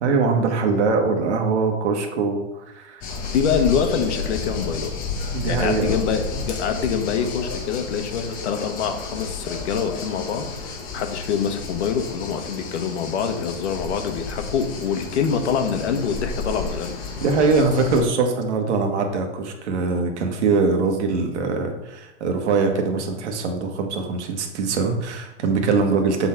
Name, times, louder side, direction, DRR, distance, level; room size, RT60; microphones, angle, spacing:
voice 1, 0.0-3.1 5.3-6.0 6.3-6.4 17.2-26.3, right 4 dB, 75° right, 4 dB, 1.4 m, -22 dB
sound 1, 3.0-18.0, left 4 dB, 25° left, 0.9 m, -32 dB
voice 2, 3.2-4.9 5.5-16.9, left 7 dB, 70° left, 7 dB, 1.1 m, -25 dB
7.2 x 4.1 x 4.4 m, 0.95 s
supercardioid pair, 150°, 35 cm